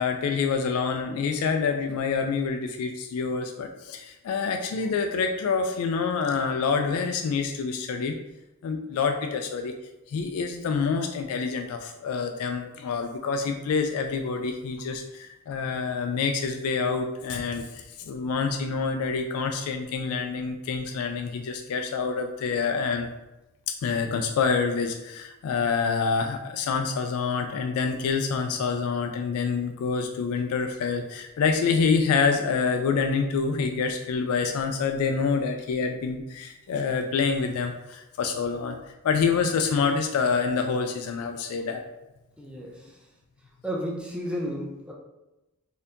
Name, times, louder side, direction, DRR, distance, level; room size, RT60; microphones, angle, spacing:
voice 1, 0.0-8.2 8.6-9.7 10.1-23.1 23.7-38.8 39.0-41.8, left 5 dB, 70° left, 5 dB, 0.3 m, -27 dB
voice 2, 42.4-42.9 43.6-44.9, equal, 5° right, -3 dB, 0.5 m, -32 dB
4.2 x 2.7 x 2.5 m, 1.0 s
head